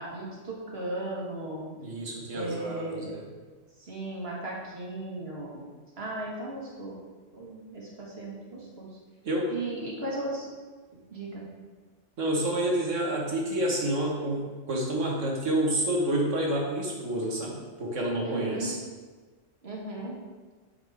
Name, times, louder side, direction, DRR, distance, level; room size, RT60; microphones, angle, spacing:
voice 1, 0.0-1.7 2.3-3.1 3.8-5.6 6.0-7.0 7.3-8.9 9.5-10.5 11.1-11.5 18.2-18.7 19.6-20.2, right 2 dB, 55° right, -3 dB, 1.9 m, -36 dB
voice 2, 1.7-3.2 9.2-9.7 10.0-10.2 12.2-18.8, right 1 dB, 80° right, -2 dB, 1.8 m, -29 dB
7.6 x 7.0 x 3.5 m, 1.4 s
omnidirectional pair, 1.3 m